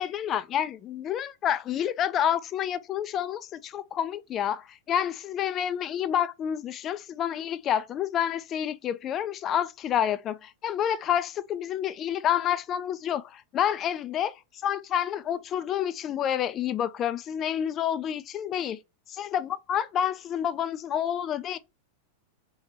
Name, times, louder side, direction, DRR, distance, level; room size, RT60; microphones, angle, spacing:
voice 1, 0.0-14.3 14.6-18.8 19.1-21.6, left 9 dB, 30° left, 0.3 m, -29 dB
3.3 x 3.1 x 2.9 m
figure-of-eight pair, 90°, 0 cm